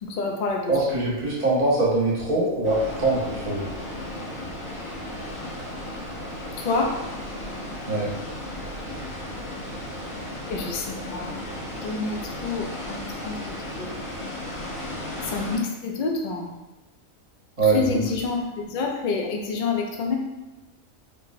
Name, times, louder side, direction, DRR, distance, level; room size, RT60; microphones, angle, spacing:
voice 1, 0.0-0.6 6.6-6.9 10.5-11.4 11.8-12.2 12.4-13.4 13.8-13.9 15.3-16.5 17.6-20.2, left 4 dB, 70° left, 1 dB, 0.4 m, -27 dB
voice 2, 0.7-3.6 7.9-8.1 17.6-18.0, right 2 dB, 90° right, -6 dB, 1.5 m, -23 dB
sound 1, 2.6-15.6, left 1 dB, 20° left, 0.7 m, -35 dB
4.4 x 2.0 x 2.5 m, 1.0 s
omnidirectional pair, 1.4 m